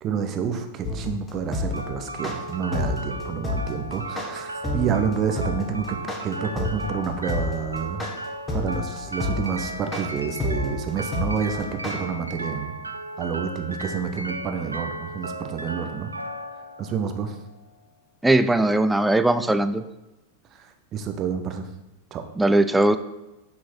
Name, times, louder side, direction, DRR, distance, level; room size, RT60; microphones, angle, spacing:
voice 1, 0.0-8.1 8.5-12.7 13.2-16.1 16.8-17.4 20.5-21.7 22.1-22.2, right 7 dB, 30° right, 7 dB, 0.8 m, -29 dB
sound 1, 0.8-11.9, left 3 dB, 15° left, 1.3 m, -28 dB
sound 2, 1.7-17.7, right 1 dB, 80° right, 0.4 m, -35 dB
voice 2, 18.2-19.8 22.4-23.0, right 1 dB, 5° right, 11 dB, 0.3 m, -19 dB
6.2 x 5.8 x 4.4 m, 1.0 s
figure-of-eight pair, 90°, 0 cm